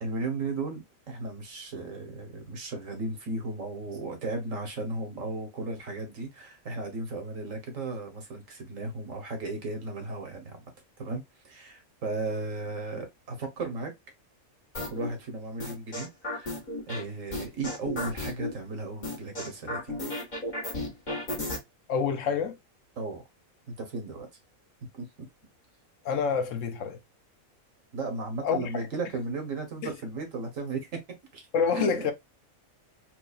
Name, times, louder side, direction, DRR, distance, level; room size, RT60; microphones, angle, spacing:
voice 1, 0.0-10.6 11.0-13.9 14.9-16.5 16.9-20.0 23.0-23.2 23.7-24.3 24.9-25.1 27.9-30.9 31.3-31.4 31.7-32.1, right 2 dB, 65° right, 1.6 m, -35 dB
sound 1, 14.7-15.1 15.6-17.0 17.3-18.5 19.0-21.6, left 1 dB, 35° left, 1.6 m, -33 dB
voice 2, 21.9-22.6 26.0-27.0 28.4-28.7 29.8-29.9 31.5-32.1, left 6 dB, 70° left, 1.0 m, -27 dB
4.6 x 2.6 x 2.4 m
omnidirectional pair, 1.5 m